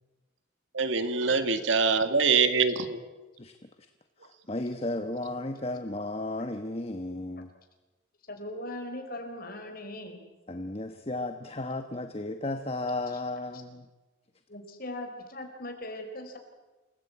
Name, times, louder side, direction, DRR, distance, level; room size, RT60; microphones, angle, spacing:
voice 1, 0.7-3.0, right 4 dB, 75° right, 9 dB, 2.1 m, -24 dB
voice 2, 3.4-3.9 4.2-7.5 10.5-13.9, left 2 dB, 30° left, 7 dB, 1.2 m, -34 dB
voice 3, 8.3-10.2 14.5-16.4, left 1 dB, 50° left, 4 dB, 4.6 m, -39 dB
28.5 x 18.0 x 8.7 m, 1.2 s
head